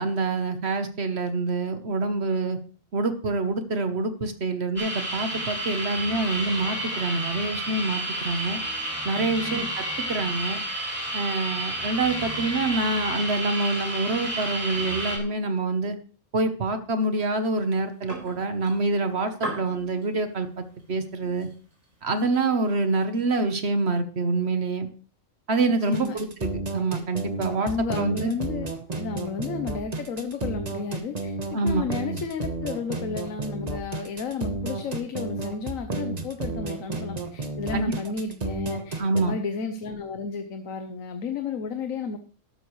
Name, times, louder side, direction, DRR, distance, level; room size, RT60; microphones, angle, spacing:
voice 1, 0.0-2.6 2.9-8.6 9.0-9.8 10.1-10.6 11.1-16.0 16.3-21.5 22.0-24.9 25.5-28.3 31.5-31.9 37.7-38.1 39.0-39.3, right 3 dB, 55° right, 9 dB, 1.3 m, -26 dB
sound 1, 4.8-15.2, right 1 dB, 10° left, 3.4 m, -31 dB
voice 2, 9.1-9.7 25.7-26.2 27.3-28.7 28.9-31.4 31.6-42.2, left 5 dB, 90° left, 7 dB, 1.3 m, -32 dB
sound 2, 17.6-23.6, right 2 dB, 80° right, 4.8 m, -42 dB
sound 3, 25.9-39.2, right 2 dB, 30° right, 1.3 m, -32 dB
12.5 x 12.0 x 3.2 m, 0.39 s
omnidirectional pair, 1.3 m